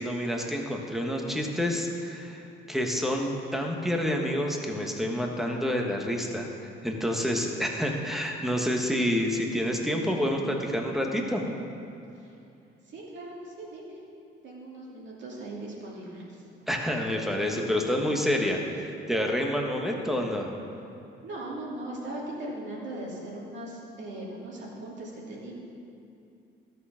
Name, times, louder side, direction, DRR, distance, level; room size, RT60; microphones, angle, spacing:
voice 1, 0.0-11.5 16.7-20.5, equal, ahead, 1 dB, 1.4 m, -28 dB
voice 2, 12.9-14.0 14.4-16.4 21.2-25.5, right 1 dB, 65° right, -5 dB, 2.8 m, -39 dB
13.0 x 6.6 x 5.8 m, 2.7 s
cardioid pair, 90°, 20 cm